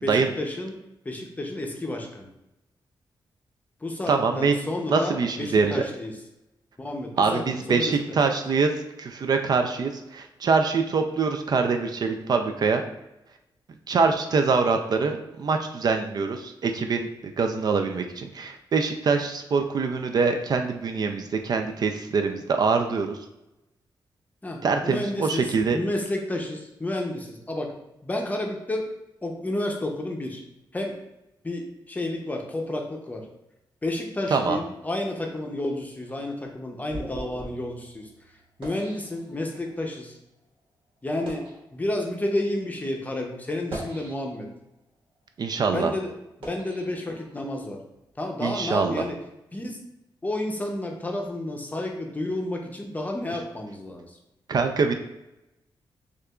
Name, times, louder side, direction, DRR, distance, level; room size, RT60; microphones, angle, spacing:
voice 1, 0.0-2.3 3.8-6.2 6.8-8.2 24.4-27.8 28.0-28.9 29.2-30.4 30.7-31.0 31.4-33.3 33.8-40.2 41.0-44.5 45.7-46.2 46.5-47.8 48.2-49.2 49.5-49.8 50.2-54.2, left 1 dB, 20° left, 1 dB, 0.6 m, -31 dB
voice 2, 4.1-4.6 4.9-5.7 7.2-8.7 9.0-12.8 13.9-23.2 24.6-25.8 34.3-34.6 45.4-45.9 48.4-49.0 54.5-54.9, right 4 dB, 50° right, 5 dB, 0.4 m, -24 dB
sound 1, 36.0-39.7 40.4-40.6 41.1-41.6 42.4-42.6 43.5-44.6 45.1-47.6, right 1 dB, 85° right, 1.3 m, -42 dB
6.3 x 2.4 x 2.3 m, 0.91 s
wide cardioid pair, 115°, 8 cm